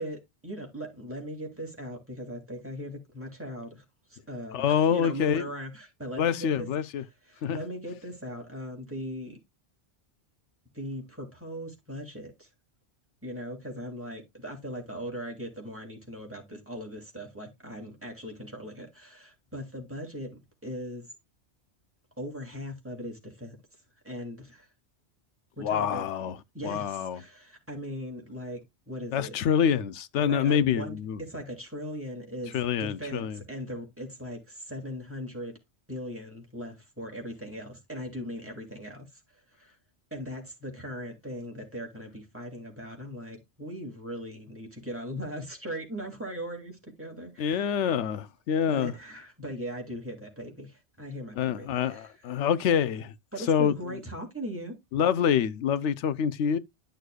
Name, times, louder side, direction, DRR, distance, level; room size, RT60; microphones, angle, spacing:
voice 1, 0.0-3.8 4.1-6.7 7.3-9.4 10.7-12.5 13.2-20.3 20.6-21.1 22.2-23.6 24.0-24.7 25.6-28.6 28.9-29.4 30.2-35.5 35.9-39.2 39.6-39.8 40.1-47.9 48.7-52.1 53.3-54.7, equal, 10° right, 2.5 m, -39 dB
voice 2, 4.5-5.5 6.2-7.0 7.4-7.6 25.6-26.4 26.6-27.2 29.1-31.2 32.5-33.4 47.4-48.9 51.4-53.1 53.5-53.7 54.9-56.6, left 8 dB, 90° left, 1.0 m, -26 dB
11.5 x 6.3 x 2.3 m
omnidirectional pair, 1.2 m